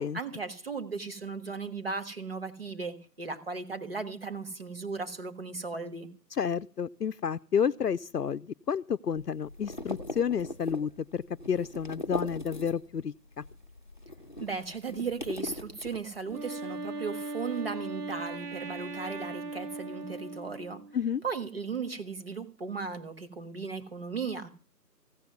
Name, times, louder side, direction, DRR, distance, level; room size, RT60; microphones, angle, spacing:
voice 1, 0.0-6.1 14.4-20.8 21.2-24.5, right 4 dB, 35° right, 9 dB, 1.5 m, -36 dB
voice 2, 6.3-13.4 20.9-21.2, left 7 dB, 70° left, 14 dB, 0.6 m, -30 dB
sound 1, 9.1-13.0 13.3-16.4, left 1 dB, 30° left, 0.8 m, -40 dB
Wind instrument woodwind instrument, 16.3-21.0, right 3 dB, 70° right, 1.0 m, -38 dB
16.0 x 6.9 x 9.4 m, 0.38 s
figure-of-eight pair, 165°, 50 cm